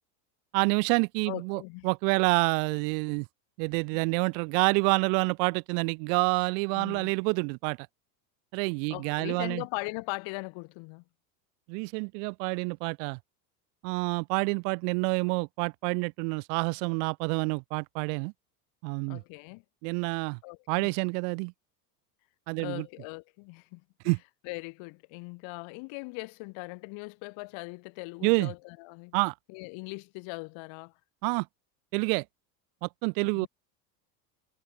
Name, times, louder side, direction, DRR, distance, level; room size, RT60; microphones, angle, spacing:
voice 1, 0.5-3.3 3.6-7.8 8.5-9.6 11.7-13.2 13.8-18.3 18.8-19.2 19.8-20.4 20.7-21.5 22.5-22.9 24.0-24.2 28.2-28.5 29.1-29.3 31.2-31.5 31.9-32.2 32.8-33.5, right 37 dB, 70° right, 2.2 m, -28 dB
voice 2, 1.3-1.9 3.9-4.0 6.7-7.1 8.9-11.0 19.1-19.6 20.4-20.9 22.6-23.8 24.4-29.2 29.5-30.9 33.3-33.5, left 29 dB, 65° left, 7.0 m, -40 dB
supercardioid pair, 100°, 50 cm